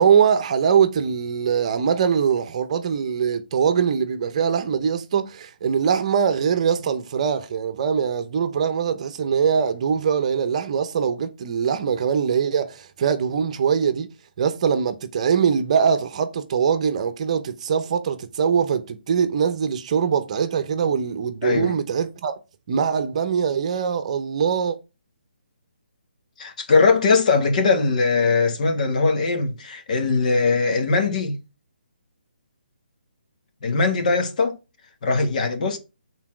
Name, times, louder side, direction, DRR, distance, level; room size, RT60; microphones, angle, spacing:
voice 1, 0.0-14.1 14.4-22.3 22.7-24.8, right 7 dB, 40° right, 0.9 m, -22 dB
voice 2, 21.4-21.8 26.4-31.4 33.6-34.6 35.0-35.8, left 4 dB, 45° left, 1.7 m, -20 dB
7.3 x 4.0 x 6.1 m
hypercardioid pair, 160°, 5 cm